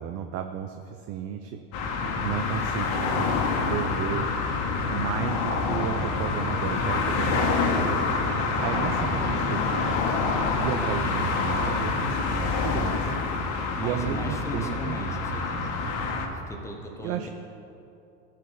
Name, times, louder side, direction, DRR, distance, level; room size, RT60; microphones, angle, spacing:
voice 1, 0.0-1.6 2.2-4.3 4.9-8.0 8.4-9.9 10.6-13.2 13.8-15.0 17.0-17.3, right 9 dB, 45° right, 6 dB, 0.6 m, -33 dB
sound 1, 1.7-16.3, left 4 dB, 50° left, 1.6 m, -27 dB
voice 2, 13.8-15.9 16.3-17.3, left 2 dB, 10° left, 2 dB, 1.1 m, -38 dB
15.0 x 5.1 x 7.3 m, 2.7 s
supercardioid pair, 135°, 34 cm